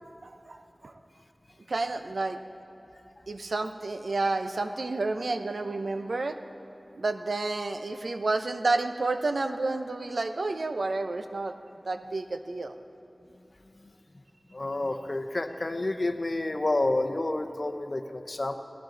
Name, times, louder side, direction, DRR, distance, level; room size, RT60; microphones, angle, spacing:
voice 1, 0.2-0.9 1.7-2.4 3.3-6.4 6.9-11.5 11.8-12.7, right 3 dB, 85° right, 8 dB, 0.6 m, -30 dB
voice 2, 14.5-18.6, left 2 dB, 55° left, 7 dB, 0.8 m, -29 dB
18.5 x 14.5 x 3.9 m, 3.0 s
wide cardioid pair, 50°, 0 cm